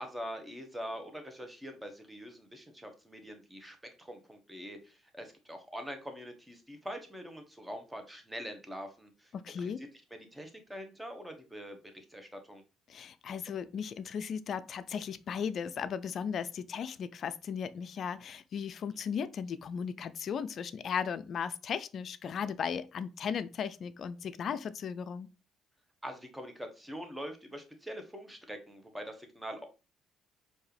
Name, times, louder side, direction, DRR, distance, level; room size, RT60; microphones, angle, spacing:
voice 1, 0.0-9.9 10.3-12.6 26.0-29.6, equal, 10° right, 1.2 m, -44 dB
voice 2, 9.3-9.8 12.9-25.3, left 7 dB, 55° left, 0.3 m, -36 dB
4.5 x 2.7 x 3.2 m
hypercardioid pair, 55°, 0 cm